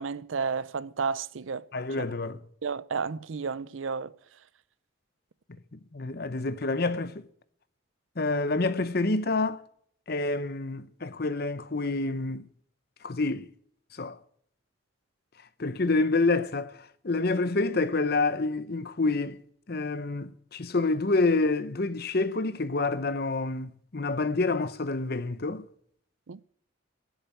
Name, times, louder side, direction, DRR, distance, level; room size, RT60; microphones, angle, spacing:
voice 1, 0.0-1.6 2.6-4.1 26.3-26.4, right 5 dB, 75° right, 0.5 m, -32 dB
voice 2, 1.7-2.4 5.7-7.3 8.2-9.6 10.1-12.4 13.0-13.5 13.9-14.2 15.6-19.4 19.7-25.7, left 3 dB, 50° left, 0.8 m, -28 dB
11.0 x 8.0 x 9.1 m
head